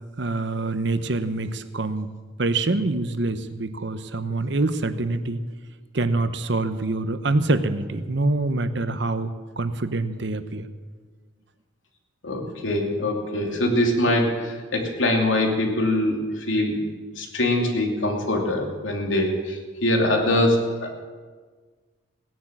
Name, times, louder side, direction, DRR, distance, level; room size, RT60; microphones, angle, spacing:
voice 1, 0.2-2.1 2.4-5.4 5.9-9.3 9.6-10.7, right 2 dB, 65° right, 11 dB, 0.9 m, -25 dB
voice 2, 12.2-16.8 17.2-21.0, left 1 dB, 85° left, 1 dB, 2.8 m, -23 dB
17.5 x 10.5 x 7.4 m, 1.5 s
head